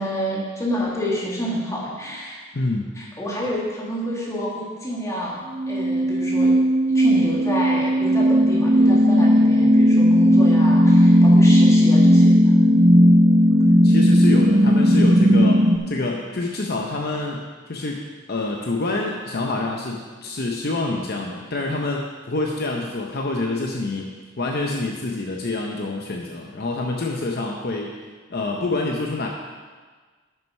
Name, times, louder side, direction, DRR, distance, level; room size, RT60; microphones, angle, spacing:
voice 1, 0.0-2.4 3.0-6.5 6.9-12.6, equal, 15° left, -4 dB, 1.9 m, -28 dB
voice 2, 2.5-2.9 13.8-24.1 24.4-28.0 28.3-29.3, left 2 dB, 50° left, 0 dB, 0.8 m, -27 dB
sound 1, 5.6-15.8, equal, 25° right, 0.5 m, -15 dB
9.2 x 6.5 x 5.4 m, 1.4 s
head